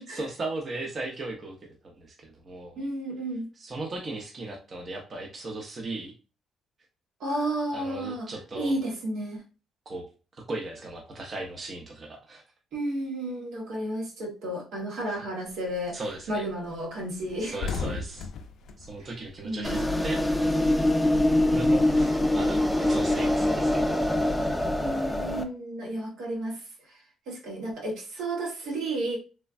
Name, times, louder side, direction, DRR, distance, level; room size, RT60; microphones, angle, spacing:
voice 1, 0.0-1.6 2.0-2.8 3.6-6.1 7.7-8.8 9.9-10.0 10.3-12.4 15.9-16.5 17.4-18.3 18.8-20.2 21.4-24.1, right 2 dB, 40° right, 0 dB, 0.6 m, -37 dB
voice 2, 2.8-3.5 7.2-8.3 8.5-9.4 12.7-16.0 16.3-17.6 19.0-19.1 19.4-19.8 24.8-26.6 26.9-29.2, right 1 dB, 85° right, -2 dB, 1.1 m, -32 dB
sound 1, 15.5-15.8 16.2-16.4 16.6-16.8 17.1-20.1 20.4-22.0, left 5 dB, 75° left, 0.3 m, -37 dB
sound 2, 19.6-25.4, left 1 dB, 5° left, 0.4 m, -24 dB
3.2 x 2.2 x 2.4 m, 0.34 s
cardioid pair, 90°, 0 cm